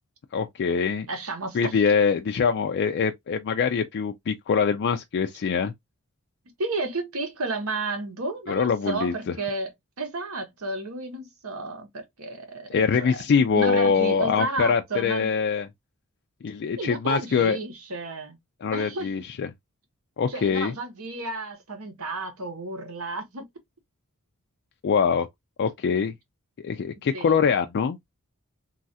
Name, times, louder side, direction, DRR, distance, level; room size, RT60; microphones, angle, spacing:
voice 1, 0.3-1.1 1.5-5.7 8.5-9.3 12.7-15.7 16.4-17.6 18.6-19.5 20.2-20.7 24.8-25.3 25.6-26.1 26.6-28.0, left 6 dB, 55° left, 0.3 m, -23 dB
voice 2, 1.1-1.8 6.6-9.7 10.0-12.7 13.0-13.2 13.5-15.3 16.8-18.4 18.7-19.1 20.3-23.5 27.1-27.4, right 3 dB, 75° right, 1.0 m, -32 dB
3.1 x 2.4 x 2.6 m
head